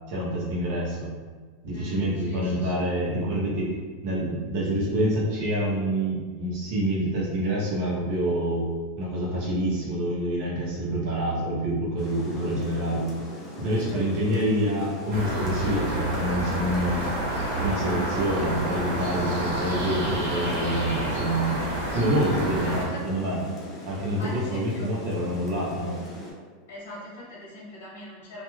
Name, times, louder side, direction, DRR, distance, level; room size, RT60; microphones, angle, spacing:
voice 1, 0.1-1.1 1.6-3.7 4.0-8.7 9.0-13.1 13.6-17.1 17.6-23.4 23.9-26.0, right 1 dB, 45° right, -5 dB, 0.7 m, -27 dB
voice 2, 1.7-2.8 13.9-14.4 22.6-23.2 24.2-24.9 26.7-28.4, left 1 dB, 80° left, -5 dB, 0.9 m, -41 dB
Rain, 12.0-26.3, left 1 dB, 15° left, 0.5 m, -41 dB
sound 1, 15.1-22.8, right 1 dB, 75° right, 1.0 m, -29 dB
2.3 x 2.2 x 3.1 m, 1.5 s
supercardioid pair, 175°, 0 cm